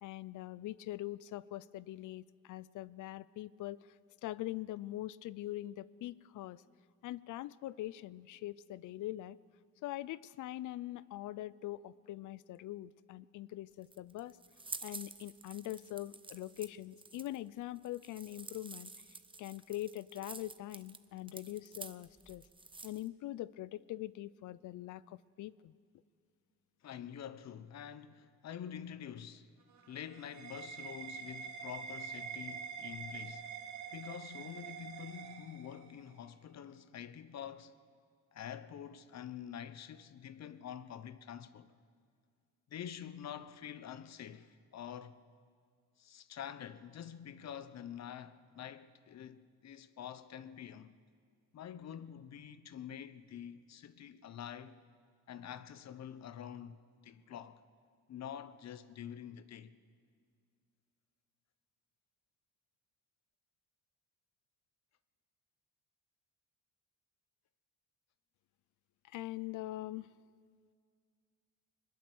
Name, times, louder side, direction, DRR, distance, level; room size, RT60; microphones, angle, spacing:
voice 1, 0.0-3.9 4.2-6.6 7.0-9.4 9.8-14.4 14.8-18.9 19.4-22.4 22.8-25.7 69.0-70.1, left 15 dB, 80° left, 0.6 m, -43 dB
sound 1, 13.7-23.1, right 3 dB, 15° right, 0.9 m, -49 dB
voice 2, 26.8-29.5 29.9-33.6 33.9-37.7 38.3-41.7 42.7-45.2 46.0-50.9 51.5-54.8 55.3-57.6 58.1-59.7, left 9 dB, 60° left, 1.0 m, -47 dB
sound 2, 29.6-36.1, right 6 dB, 70° right, 2.1 m, -46 dB
20.5 x 20.5 x 8.0 m
cardioid pair, 90°, 30 cm